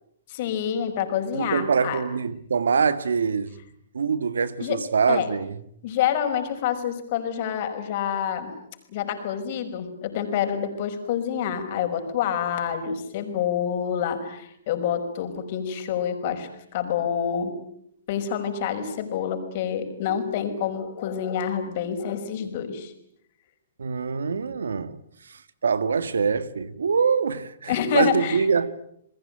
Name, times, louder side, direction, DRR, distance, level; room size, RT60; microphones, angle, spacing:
voice 1, 0.3-2.0 4.6-4.8 5.1-5.3 5.8-8.5 8.9-17.5 18.1-22.9 27.7-28.5, left 8 dB, 50° left, 5.5 m, -27 dB
voice 2, 1.3-3.6 3.9-5.6 23.8-28.7, right 5 dB, 80° right, 1.7 m, -24 dB
30.0 x 20.5 x 9.0 m
hypercardioid pair, 130°, 0 cm